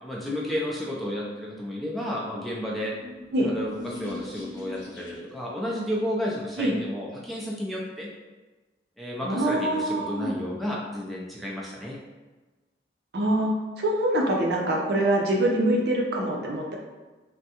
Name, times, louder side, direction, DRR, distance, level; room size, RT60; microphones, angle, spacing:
voice 1, 0.0-2.9 3.4-8.1 9.0-12.0, equal, ahead, -5 dB, 0.3 m, -32 dB
sound 1, 2.6-5.5, left 3 dB, 90° left, 0.8 m, -42 dB
voice 2, 9.2-10.3 13.1-16.8, right 1 dB, 60° right, -1 dB, 0.5 m, -24 dB
3.5 x 2.1 x 2.8 m, 1.2 s
head